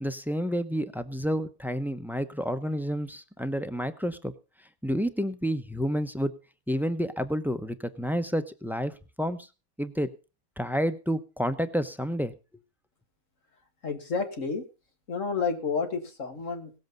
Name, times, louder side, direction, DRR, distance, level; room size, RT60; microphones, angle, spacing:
voice 1, 0.0-4.3 4.8-6.3 6.7-8.9 9.2-9.5 9.8-10.1 10.6-12.3, equal, ahead, 11 dB, 0.5 m, -29 dB
voice 2, 13.8-14.6 15.1-16.7, left 5 dB, 60° left, 6 dB, 2.2 m, -30 dB
18.0 x 7.9 x 5.3 m, 0.32 s
omnidirectional pair, 1.5 m